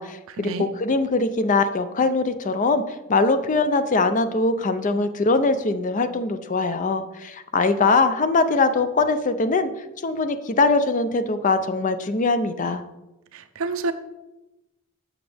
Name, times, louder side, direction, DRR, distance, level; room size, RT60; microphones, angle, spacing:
voice 1, 0.0-2.8 3.1-9.7 10.0-12.8, left 3 dB, 40° left, 10 dB, 0.5 m, -22 dB
voice 2, 13.3-13.9, right 3 dB, 70° right, 9 dB, 0.6 m, -28 dB
7.2 x 7.0 x 3.4 m, 0.99 s
head